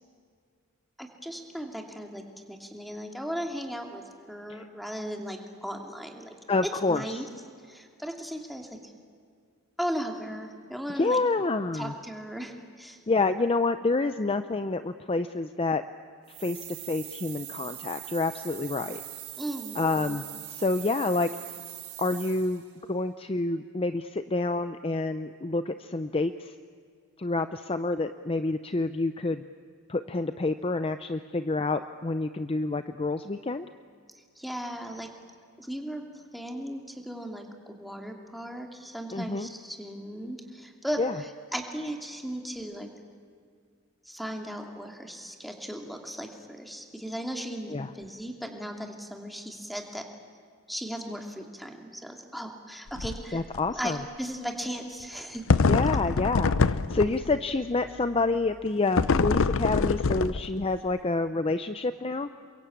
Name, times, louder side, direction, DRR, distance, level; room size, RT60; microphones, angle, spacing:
voice 1, 1.0-2.2 2.5-6.3 6.9-7.2 7.7-8.9 9.8-11.2 11.7-13.0 19.4-20.2 34.4-35.1 35.6-36.0 36.3-42.9 44.0-50.1 50.7-53.4 53.7-55.5, equal, ahead, 3 dB, 2.6 m, -37 dB
voice 2, 6.5-7.0 11.0-11.9 13.1-15.8 16.4-19.0 19.8-21.3 22.0-22.6 22.9-26.5 27.2-29.4 29.9-33.7 39.1-39.5 41.0-41.1 47.7-47.9 53.3-54.0 55.7-62.3, left 3 dB, 25° left, 10 dB, 0.6 m, -28 dB
sound 1, 16.3-22.7, right 14 dB, 85° right, 2.8 m, -42 dB
sound 2, 52.9-53.2 53.6-53.7 55.5-57.4 59.0-60.7, left 4 dB, 60° left, 0.7 m, -24 dB
28.5 x 23.0 x 8.7 m, 2.1 s
head